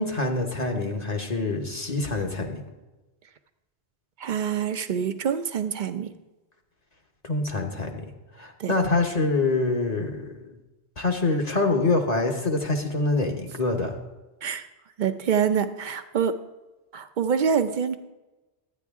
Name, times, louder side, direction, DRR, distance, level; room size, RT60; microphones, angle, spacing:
voice 1, 0.0-2.6 7.2-8.0 8.4-10.5 11.0-13.9, left 3 dB, 40° left, 2 dB, 1.1 m, -25 dB
voice 2, 4.2-6.1 8.6-8.7 14.4-14.7 15.0-16.3 16.9-18.0, right 7 dB, 55° right, 10 dB, 0.6 m, -25 dB
11.5 x 9.3 x 3.6 m, 1.1 s
omnidirectional pair, 1.1 m